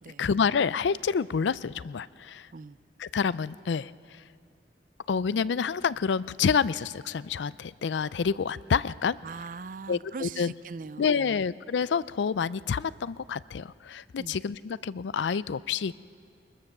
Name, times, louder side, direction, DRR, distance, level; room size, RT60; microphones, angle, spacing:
voice 1, 0.2-2.5 3.0-4.2 5.1-9.2 9.9-10.5 11.0-15.9, left 6 dB, 85° left, 19 dB, 0.4 m, -28 dB
voice 2, 9.2-11.4 14.2-14.4, right 4 dB, 45° right, 17 dB, 0.4 m, -41 dB
22.0 x 21.5 x 6.7 m, 2.4 s
head